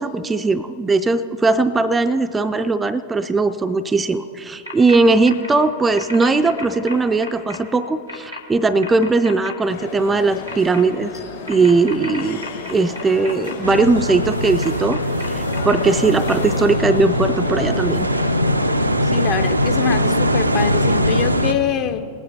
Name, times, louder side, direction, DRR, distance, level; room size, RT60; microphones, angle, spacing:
voice 1, 0.0-11.1 11.5-12.4 12.7-18.1, right 3 dB, 15° right, 9 dB, 0.4 m, -19 dB
sound 1, 4.7-5.0 5.2-5.5 6.0-7.6 8.1-8.4 8.8-9.5 10.5-10.8 11.5-13.5 14.4-15.8 16.3-16.4, left 1 dB, 90° left, 1.9 m, -33 dB
sound 2, 9.7-18.4, left 4 dB, 65° left, 3.8 m, -33 dB
sound 3, 13.6-21.5, equal, 85° right, 0.5 m, -21 dB
voice 2, 18.8-22.1, left 8 dB, 40° left, 8 dB, 0.7 m, -24 dB
20.0 x 9.3 x 4.1 m, 2.6 s
figure-of-eight pair, 90°, 0 cm